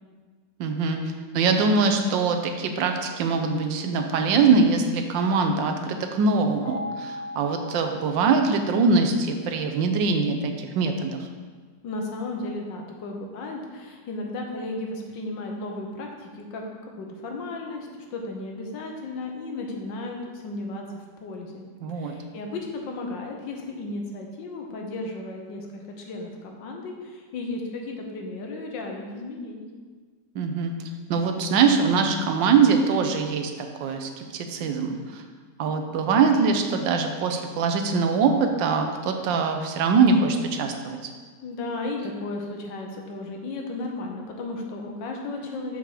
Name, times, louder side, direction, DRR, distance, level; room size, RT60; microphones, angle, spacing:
voice 1, 0.6-1.0 1.3-11.3 21.8-22.1 30.3-30.7 31.1-35.2 35.6-41.0, right 4 dB, 85° right, 5 dB, 1.5 m, -23 dB
sound 1, 6.6-9.6, left 1 dB, 55° left, 1.3 m, -39 dB
voice 2, 11.8-16.6 17.0-21.7 21.9-29.7 41.4-45.8, left 2 dB, 85° left, 1 dB, 1.7 m, -34 dB
6.8 x 5.8 x 4.9 m, 1.5 s
omnidirectional pair, 1.9 m